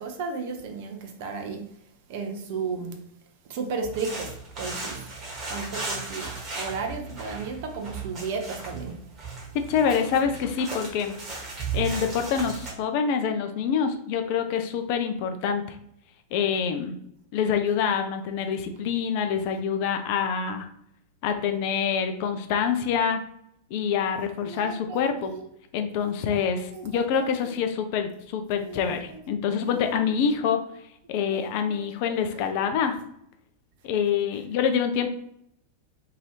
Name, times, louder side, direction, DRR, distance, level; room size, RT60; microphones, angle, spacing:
voice 1, 0.0-1.7 2.1-2.9 3.5-5.0 5.5-9.0 24.4-25.4 26.2-27.0 28.6-29.2 31.1-31.4 31.7-32.4, right 4 dB, 50° right, 4 dB, 0.6 m, -34 dB
sound 1, 3.8-12.7, right 4 dB, 30° right, 1.2 m, -36 dB
voice 2, 9.7-11.1 11.7-15.6 16.3-16.9 17.3-20.7 21.2-23.2 23.7-25.3 25.7-30.6 31.1-33.0 33.8-35.1, left 7 dB, 45° left, 6 dB, 0.4 m, -26 dB
2.8 x 2.6 x 3.2 m, 0.73 s
figure-of-eight pair, 90°, 0 cm